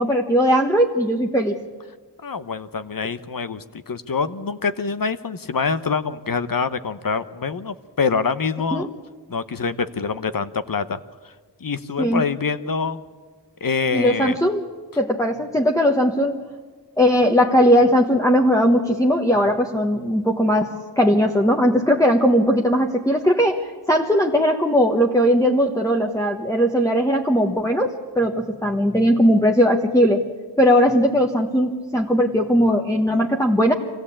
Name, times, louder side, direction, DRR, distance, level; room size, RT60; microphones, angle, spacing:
voice 1, 0.0-1.5 8.7-8.9 12.0-12.2 13.9-14.7 15.0-16.4 17.0-30.2 30.6-33.7, equal, 5° left, -1 dB, 1.3 m, -18 dB
voice 2, 2.2-8.9 9.3-11.3 11.6-13.0 13.6-14.4, left 5 dB, 50° left, 12 dB, 0.9 m, -25 dB
25.0 x 16.0 x 8.6 m, 1.4 s
wide cardioid pair, 65°, 43 cm